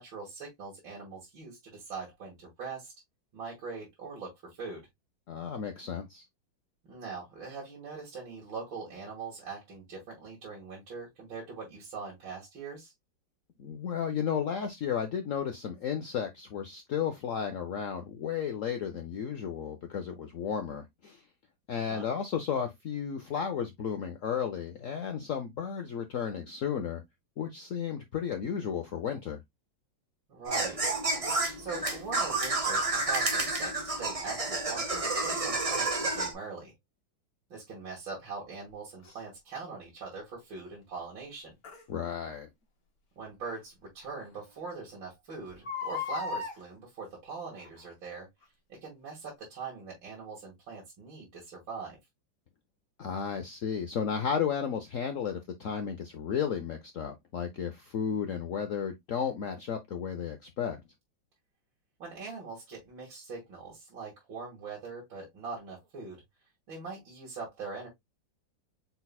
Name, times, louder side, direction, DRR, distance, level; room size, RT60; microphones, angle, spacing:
voice 1, 0.0-2.9 3.3-4.8 6.9-12.9 21.8-22.1 30.3-30.8 31.6-36.7 37.5-41.5 43.2-48.3 48.7-52.0 62.0-66.2 66.7-67.9, right 4 dB, 80° right, 2.8 m, -42 dB
voice 2, 5.3-6.2 13.6-21.2 21.7-27.0 27.4-29.4 41.9-42.5 53.0-60.8, left 7 dB, 65° left, 0.8 m, -33 dB
sound 1, 30.5-36.3, right 2 dB, 35° right, 0.5 m, -30 dB
Crying sobbing, 39.0-39.2 41.6-41.8 43.4-43.5 44.0-44.1 44.4-44.5 45.5-46.6 47.5-47.9 48.4-48.5, left 5 dB, 50° left, 2.1 m, -36 dB
5.4 x 4.2 x 2.3 m
omnidirectional pair, 2.1 m